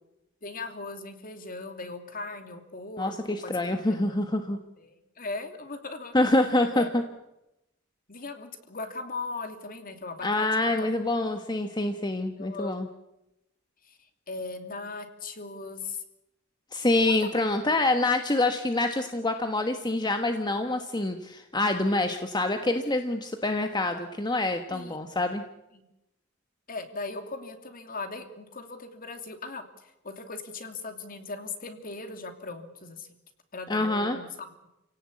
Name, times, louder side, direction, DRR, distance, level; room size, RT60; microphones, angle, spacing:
voice 1, 0.4-4.2 4.8-6.1 6.7-6.9 8.1-10.5 10.8-10.9 12.4-12.8 13.8-14.0 14.3-16.0 17.0-17.4 24.7-25.0 25.7-25.8 26.7-33.1 33.5-34.5, left 3 dB, 45° left, 7 dB, 2.8 m, -38 dB
voice 2, 3.0-4.6 6.1-7.0 10.2-12.9 16.7-25.4 33.7-34.2, left 2 dB, 20° left, 6 dB, 1.3 m, -26 dB
29.5 x 17.5 x 8.5 m, 0.93 s
head